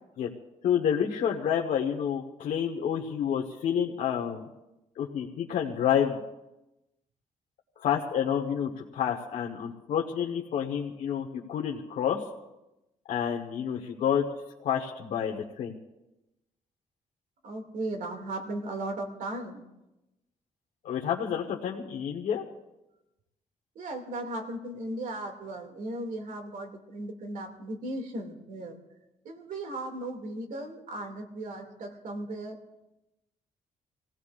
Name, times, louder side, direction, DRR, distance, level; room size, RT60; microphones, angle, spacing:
voice 1, 0.6-4.5 4.9-6.2 7.8-12.2 13.1-14.2 14.6-15.7 20.8-22.4, left 8 dB, 90° left, -1 dB, 1.3 m, -29 dB
voice 2, 17.4-19.6 23.8-28.8 29.2-32.6, right 1 dB, 80° right, 3 dB, 2.4 m, -36 dB
27.0 x 16.5 x 2.5 m, 0.96 s
cardioid pair, 125°, 13 cm